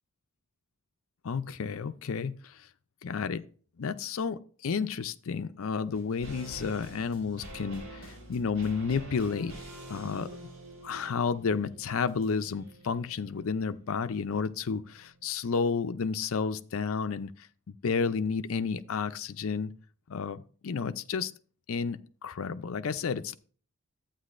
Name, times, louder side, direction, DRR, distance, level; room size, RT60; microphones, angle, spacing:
voice 1, 1.2-2.6 3.0-3.4 3.8-9.5 9.9-10.3 10.8-17.3 17.7-19.7 20.1-21.3 21.7-23.3, left 5 dB, 65° left, 0.5 m, -31 dB
sound 1, 5.9-15.3 15.6-15.7, right 1 dB, 75° right, 5.3 m, -47 dB
11.5 x 8.8 x 2.5 m
head